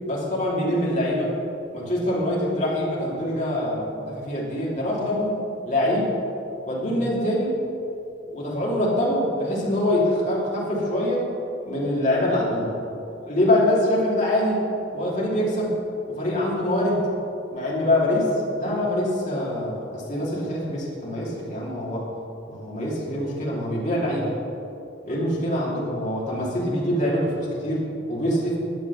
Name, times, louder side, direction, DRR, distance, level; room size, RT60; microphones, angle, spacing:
voice 1, 0.1-1.3 1.7-5.4 5.7-6.1 6.7-7.6 8.3-11.3 11.6-12.7 13.2-14.6 14.9-15.7 16.1-17.0 17.5-22.1 22.5-24.3 25.1-28.6, left 1 dB, 40° left, -5 dB, 2.8 m, -24 dB
11.0 x 7.1 x 7.0 m, 2.8 s
head